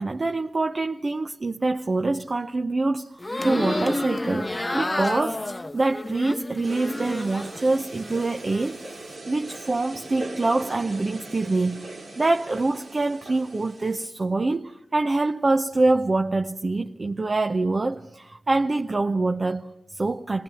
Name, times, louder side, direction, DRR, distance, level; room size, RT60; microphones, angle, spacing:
voice 1, 0.0-8.8 9.3-11.8 12.2-20.4, right 2 dB, 45° right, 0.9 m, -25 dB
sound 1, 3.2-7.6 8.0-8.7, left 2 dB, 25° left, 0.8 m, -30 dB
sound 2, 6.6-14.1, right 2 dB, 85° right, 4.1 m, -40 dB
27.5 x 18.0 x 9.2 m
cardioid pair, 45°, 0 cm